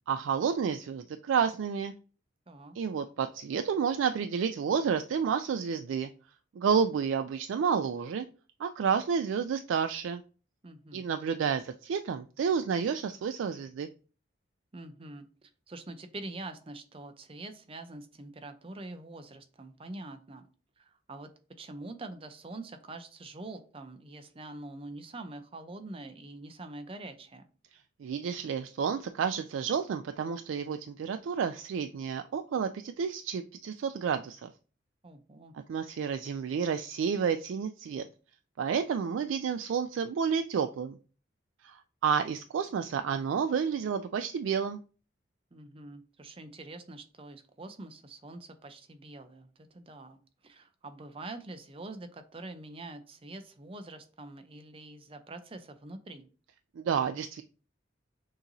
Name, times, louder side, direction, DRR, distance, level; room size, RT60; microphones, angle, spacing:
voice 1, 0.1-1.9 2.7-6.1 6.6-8.3 8.6-10.2 10.9-13.9 28.0-34.5 35.7-38.0 38.6-41.0 41.6-44.8 56.8-57.4, right 6 dB, 85° right, 9 dB, 0.3 m, -30 dB
voice 2, 2.5-2.8 10.6-11.1 14.7-20.5 20.8-21.3 21.6-27.4 35.0-35.5 45.5-56.3, right 2 dB, 30° right, 8 dB, 0.5 m, -45 dB
6.4 x 2.9 x 2.6 m, 0.37 s
head